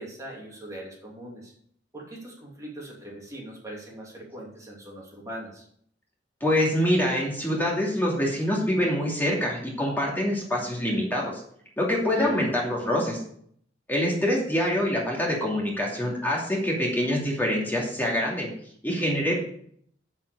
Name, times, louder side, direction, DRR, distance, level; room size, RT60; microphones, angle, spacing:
voice 1, 0.0-1.5 1.9-5.7 12.2-12.4, right 1 dB, 20° right, -3 dB, 2.6 m, -41 dB
voice 2, 6.4-11.3 11.8-13.2 13.9-18.5 18.8-19.3, left 1 dB, 10° left, -3 dB, 2.7 m, -25 dB
7.6 x 7.5 x 6.8 m, 0.64 s
head